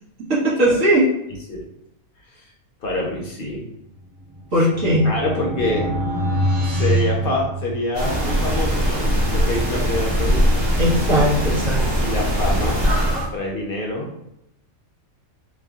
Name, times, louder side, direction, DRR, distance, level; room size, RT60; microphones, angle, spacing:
voice 1, 0.3-1.1 4.5-5.1 10.8-11.8, right 1 dB, 60° right, -6 dB, 1.4 m, -18 dB
voice 2, 2.8-3.6 4.5-4.7 5.0-5.9 6.6-10.6 12.0-12.9 13.3-14.1, left 2 dB, 55° left, -1 dB, 0.6 m, -26 dB
sound 1, 4.1-8.1, equal, 85° right, 1.3 m, -24 dB
sound 2, 7.9-13.3, equal, 45° right, 1.4 m, -20 dB
3.1 x 2.6 x 3.5 m, 0.82 s
omnidirectional pair, 1.5 m